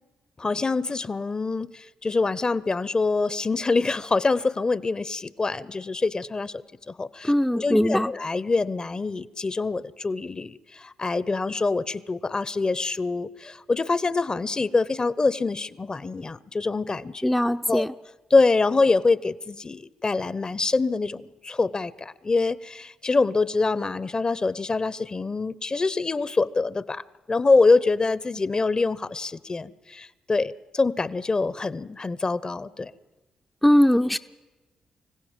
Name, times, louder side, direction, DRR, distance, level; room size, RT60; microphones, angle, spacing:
voice 1, 0.4-17.3 17.7-17.8 18.3-32.9, left 3 dB, 35° left, 18 dB, 0.9 m, -25 dB
voice 2, 7.2-8.1 17.2-17.9 33.6-34.2, equal, 5° left, 6 dB, 0.6 m, -20 dB
24.5 x 16.0 x 7.4 m, 1.2 s
hypercardioid pair, 45°, 2 cm